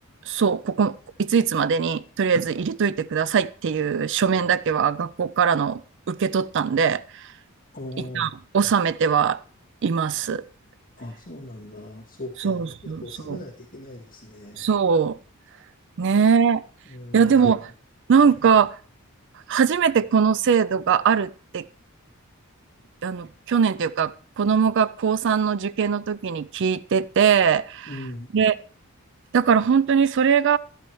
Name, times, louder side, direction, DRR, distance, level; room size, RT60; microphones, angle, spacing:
voice 1, 0.3-0.9 1.2-5.8 6.1-7.3 8.0-9.4 9.8-10.4 12.4-13.4 14.6-15.2 16.0-16.6 17.1-17.7 18.1-18.8 19.5-21.6 23.0-27.9 28.3-28.6 29.3-30.6, right 6 dB, 55° right, 17 dB, 0.4 m, -21 dB
voice 2, 7.7-8.3 11.0-14.7 16.0-16.1 16.9-17.6 27.9-28.3, left 1 dB, 40° left, -3 dB, 2.3 m, -39 dB
13.5 x 11.5 x 3.1 m, 0.40 s
head